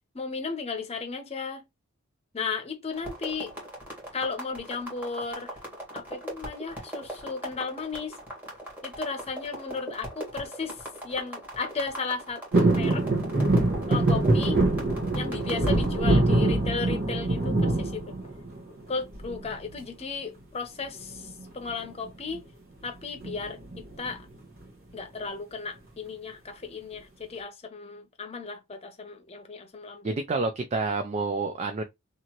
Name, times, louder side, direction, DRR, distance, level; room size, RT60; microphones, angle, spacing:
voice 1, 0.1-1.6 2.3-3.5 4.1-5.5 5.9-8.2 8.8-10.7 11.0-13.1 13.9-14.6 15.1-18.1 18.9-21.1 21.5-22.4 22.8-23.6 24.0-24.3 24.9-30.2, left 4 dB, 30° left, 0.7 m, -35 dB
sound 1, 2.9-15.9, equal, 10° right, 1.3 m, -40 dB
sound 2, 12.5-18.7 19.1-19.7 21.0-21.4 21.7-21.8 22.1-22.4 23.2-24.1 24.6-24.7, right 2 dB, 50° right, 1.1 m, -24 dB
voice 2, 30.0-31.8, right 3 dB, 30° right, 0.3 m, -28 dB
2.8 x 2.5 x 2.8 m
head